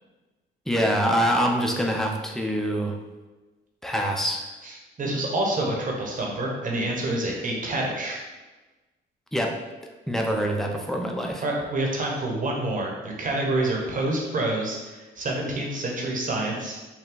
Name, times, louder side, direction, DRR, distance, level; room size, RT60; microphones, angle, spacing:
voice 1, 0.7-2.9 3.8-4.5 9.3-9.5 10.1-11.4, equal, ahead, 1 dB, 0.7 m, -25 dB
voice 2, 4.6-8.2 11.4-16.8, right 1 dB, 40° right, -1 dB, 1.2 m, -27 dB
5.9 x 2.2 x 3.9 m, 1.2 s
cardioid pair, 90°, 20 cm